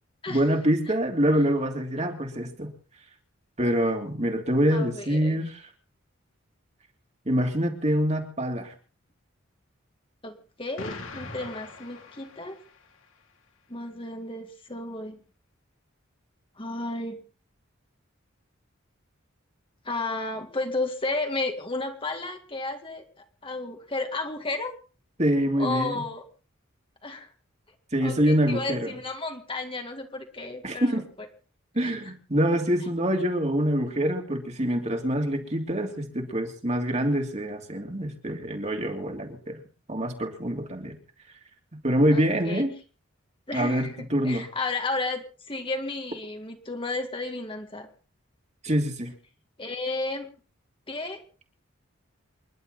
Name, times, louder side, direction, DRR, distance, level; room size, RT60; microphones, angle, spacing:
voice 1, 0.3-2.7 3.6-5.6 7.2-8.7 25.2-26.0 27.9-28.9 30.6-31.0 31.7-39.6 39.9-41.0 41.8-42.7 43.5-44.5 48.6-49.1, equal, 35° right, 3 dB, 3.0 m, -25 dB
voice 2, 4.7-5.4 10.2-12.6 13.7-15.2 16.6-17.2 19.8-24.7 25.6-26.2 27.0-27.3 28.0-31.0 31.8-31.9 42.1-42.6 43.5-47.9 49.6-50.3 50.9-51.2, left 2 dB, 25° left, 4 dB, 2.1 m, -33 dB
Explosion, 10.8-13.0, left 3 dB, 70° left, 3.0 m, -41 dB
28.5 x 11.5 x 4.1 m, 0.38 s
head